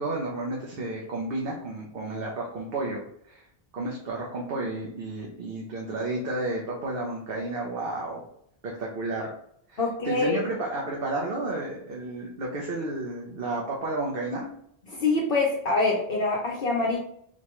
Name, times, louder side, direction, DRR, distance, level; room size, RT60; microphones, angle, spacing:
voice 1, 0.0-3.4 3.7-8.2 8.6-9.3 9.7-14.5, right 2 dB, 65° right, -2 dB, 0.9 m, -32 dB
voice 2, 9.8-10.4 14.9-17.0, left 3 dB, 65° left, -3 dB, 0.8 m, -25 dB
4.3 x 2.2 x 3.0 m, 0.70 s
omnidirectional pair, 1.0 m